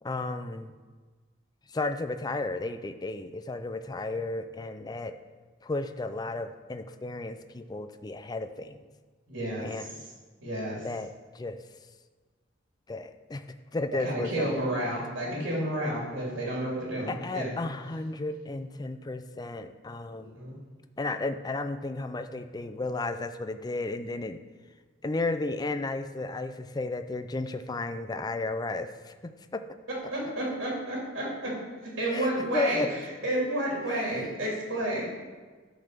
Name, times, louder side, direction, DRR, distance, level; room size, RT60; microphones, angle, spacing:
voice 1, 0.0-0.8 1.7-5.2 5.6-8.9 9.6-10.1 10.8-11.1 11.3-11.6 12.9-13.4 13.7-14.6 17.1-20.4 21.0-24.4 25.0-29.6 32.1-32.9 33.9-34.1, left 2 dB, 20° left, 9 dB, 0.4 m, -33 dB
voice 2, 9.3-9.9 10.4-10.8 14.0-17.5 20.1-20.5 30.1-31.6 31.8-32.8 33.2-35.1, right 1 dB, 70° right, -4 dB, 2.9 m, -31 dB
10.5 x 4.0 x 6.6 m, 1.4 s
head